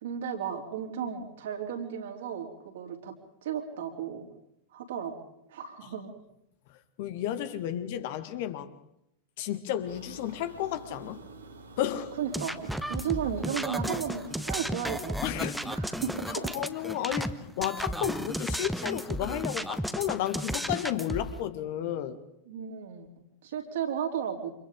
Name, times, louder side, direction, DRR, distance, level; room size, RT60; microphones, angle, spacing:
voice 1, 0.0-3.1 3.4-4.2 4.7-5.2 5.5-6.1 12.2-15.1 15.6-16.5 17.1-17.2 22.5-24.5, right 8 dB, 60° right, 3.7 m, -34 dB
voice 2, 7.0-8.7 9.4-11.2 11.8-12.1 15.2-15.8 16.3-22.2, left 11 dB, 50° left, 1.7 m, -32 dB
sound 1, 9.9-15.0, right 3 dB, 75° right, 3.4 m, -48 dB
sound 2, 12.3-17.3 17.6-21.4, equal, ahead, 1.1 m, -34 dB
29.0 x 27.0 x 3.8 m
figure-of-eight pair, 90°, 0 cm